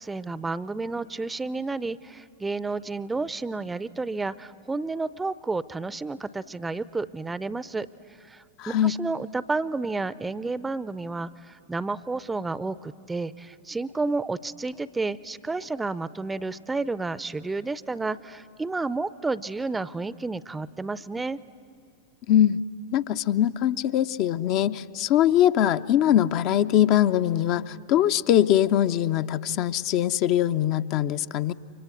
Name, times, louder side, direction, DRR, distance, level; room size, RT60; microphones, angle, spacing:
voice 1, 0.0-7.9 8.2-21.4, right 3 dB, 10° right, 18 dB, 0.6 m, -31 dB
voice 2, 8.6-8.9 22.3-22.6 22.9-31.5, left 11 dB, 40° left, 10 dB, 0.6 m, -22 dB
30.0 x 24.5 x 8.1 m, 2.7 s
figure-of-eight pair, 90°, 0 cm